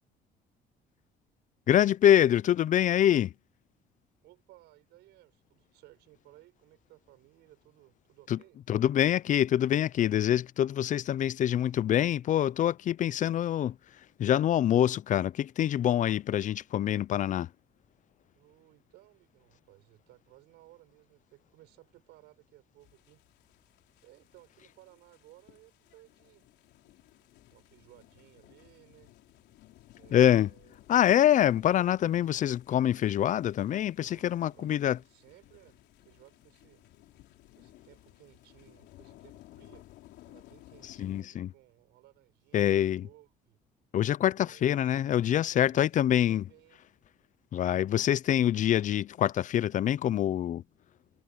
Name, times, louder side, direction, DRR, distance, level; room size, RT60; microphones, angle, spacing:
voice 1, 1.7-3.3 8.3-8.4 8.7-13.8 14.2-17.5 30.1-30.5 30.9-35.0 41.0-41.5 42.5-43.1 43.9-46.4 47.5-50.6, left 11 dB, 50° left, 0.5 m, -25 dB
voice 2, 4.2-8.6 18.3-23.2 24.0-26.5 27.5-29.1 30.0-30.8 31.3-31.9 34.0-36.8 37.6-39.9 40.3-43.6 44.3-46.8, right 18 dB, 90° right, 6.9 m, -59 dB
sound 1, 22.8-41.2, left 16 dB, 85° left, 4.0 m, -58 dB
cardioid pair, 110°, 17 cm